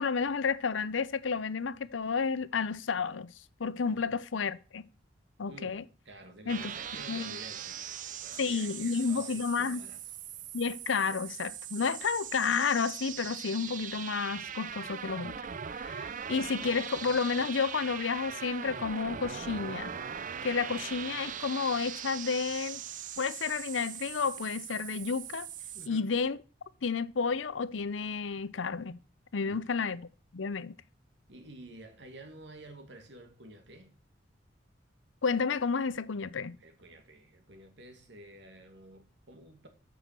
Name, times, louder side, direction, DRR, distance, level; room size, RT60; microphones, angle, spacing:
voice 1, 0.0-3.3 3.6-4.8 5.4-5.8 6.5-6.7 7.1-7.4 8.4-9.8 10.5-15.4 15.7-20.0 20.4-22.8 23.2-25.5 25.9-26.4 26.8-29.0 29.3-30.1 30.3-30.7 35.2-36.6, left 5 dB, 80° left, 0.6 m, -31 dB
voice 2, 5.5-10.0 25.7-26.1 29.4-29.8 31.3-33.9 36.6-39.7, right 1 dB, 65° right, 2.2 m, -51 dB
sound 1, 6.5-25.9, right 8 dB, 45° right, 0.5 m, -40 dB
8.3 x 6.2 x 7.5 m
head